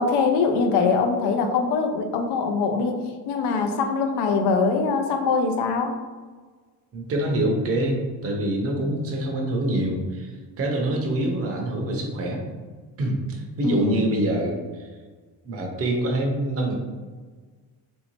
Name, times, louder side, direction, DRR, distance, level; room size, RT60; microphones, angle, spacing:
voice 1, 0.0-6.0 13.6-14.1, left 4 dB, 80° left, 5 dB, 0.6 m, -23 dB
voice 2, 6.9-12.5 13.0-14.9 15.4-16.7, right 1 dB, 35° right, 1 dB, 0.6 m, -25 dB
3.1 x 2.7 x 2.9 m, 1.5 s
cardioid pair, 150°, 39 cm